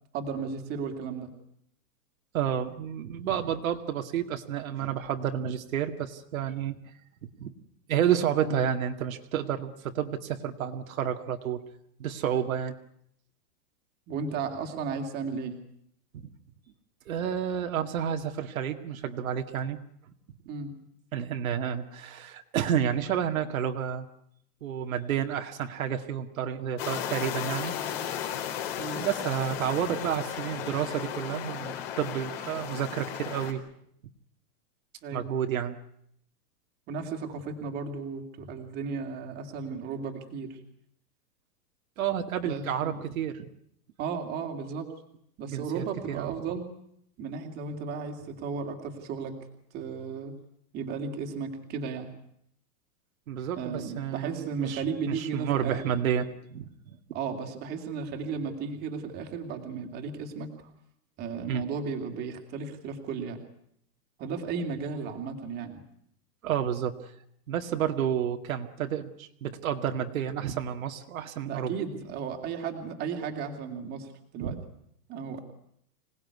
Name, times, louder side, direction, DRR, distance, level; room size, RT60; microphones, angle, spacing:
voice 1, 0.1-1.3 8.4-8.6 14.1-15.6 20.5-20.8 28.8-29.0 35.0-35.3 36.9-40.6 42.4-43.0 44.0-44.9 45.4-46.7 47.2-49.4 49.7-50.3 50.7-52.1 53.6-55.9 57.1-60.5 61.2-63.4 64.2-65.8 71.5-74.6 75.1-75.4, right 5 dB, 20° right, 4 dB, 2.7 m, -35 dB
voice 2, 2.3-6.8 7.2-7.5 7.9-11.6 12.0-12.7 16.1-16.3 17.1-19.8 21.1-24.1 24.6-27.7 29.0-33.6 35.1-35.8 42.0-43.4 45.5-46.3 53.3-57.0 61.5-61.6 66.4-67.1 67.5-71.8 74.4-74.6, right 9 dB, 60° right, 5 dB, 2.1 m, -30 dB
sound 1, 26.8-33.5, left 10 dB, 40° left, 4.1 m, -35 dB
26.0 x 19.0 x 9.6 m, 0.72 s
supercardioid pair, 175°, 47 cm